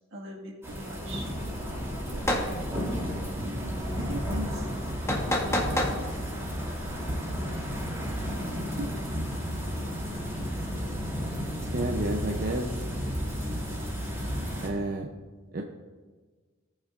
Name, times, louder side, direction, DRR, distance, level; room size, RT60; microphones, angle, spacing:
voice 1, 0.1-1.3 2.1-4.7 5.2-6.2 8.8-8.9, right 1 dB, 70° right, -1 dB, 1.8 m, -41 dB
sound 1, 0.6-14.7, equal, 15° right, 3.0 m, -32 dB
sound 2, 2.2-2.5 5.1-6.0, left 1 dB, 15° left, 1.1 m, -27 dB
voice 2, 11.7-12.8 14.6-15.1 15.5-15.6, right 1 dB, 45° right, 2 dB, 0.6 m, -30 dB
17.5 x 6.4 x 2.5 m, 1.4 s
head